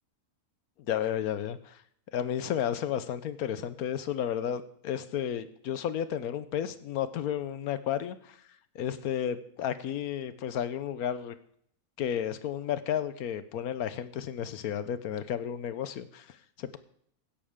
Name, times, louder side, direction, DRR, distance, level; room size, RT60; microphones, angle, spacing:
voice 1, 0.8-1.8 2.1-8.4 8.7-11.3 12.0-16.8, left 9 dB, 90° left, 13 dB, 1.3 m, -32 dB
16.0 x 11.5 x 3.6 m, 0.66 s
omnidirectional pair, 1.5 m